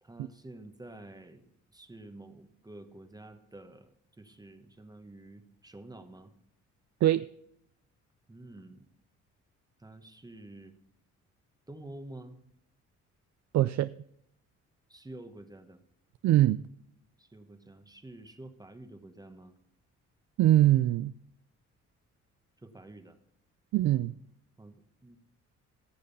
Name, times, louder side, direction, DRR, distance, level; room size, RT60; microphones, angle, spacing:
voice 1, 0.0-6.3 8.3-8.9 9.8-10.7 11.7-12.4 14.9-15.8 17.2-19.5 22.6-23.2 24.6-25.2, right 2 dB, 15° right, 1.1 m, -49 dB
voice 2, 13.5-13.9 16.2-16.6 20.4-21.1 23.7-24.1, right 13 dB, 65° right, 0.4 m, -23 dB
16.0 x 6.6 x 5.4 m
cardioid pair, 90°, 30 cm